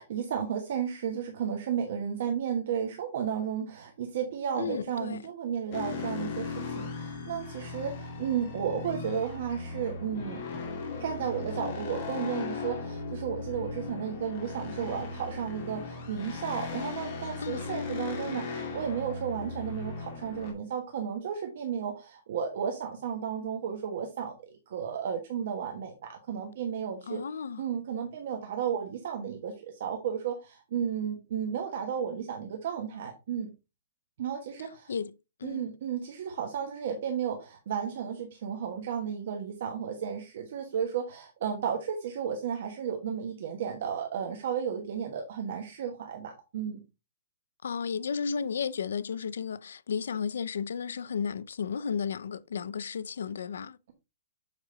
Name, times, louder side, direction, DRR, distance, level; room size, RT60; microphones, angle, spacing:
voice 1, 0.0-10.4 11.0-24.3 24.7-27.2 27.6-33.5 34.2-34.9 35.4-46.8, right 8 dB, 45° right, 1.3 m, -33 dB
voice 2, 4.6-5.3 17.4-17.7 27.1-27.6 34.9-35.7 47.6-53.8, left 6 dB, 85° left, 0.4 m, -33 dB
sound 1, 5.7-20.5, left 4 dB, 30° left, 2.2 m, -37 dB
7.3 x 5.1 x 3.8 m
hypercardioid pair, 175°, 0 cm